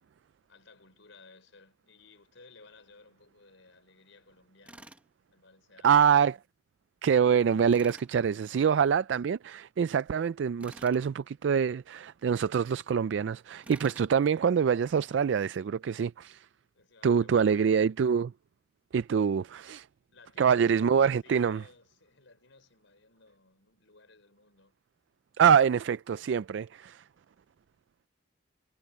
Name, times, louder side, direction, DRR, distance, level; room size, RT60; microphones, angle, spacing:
voice 1, 0.5-5.0 5.3-6.1 16.7-17.8 20.1-24.8, left 3 dB, 85° left, 4.8 m, -57 dB
Tools, 4.7-5.1 7.7-8.1 10.6-11.0 13.6-14.1, right 1 dB, 5° right, 0.8 m, -50 dB
voice 2, 5.8-6.4 7.0-16.5 17.0-18.3 18.9-19.9 20.4-21.6 25.4-27.0, right 7 dB, 70° right, 0.3 m, -25 dB
head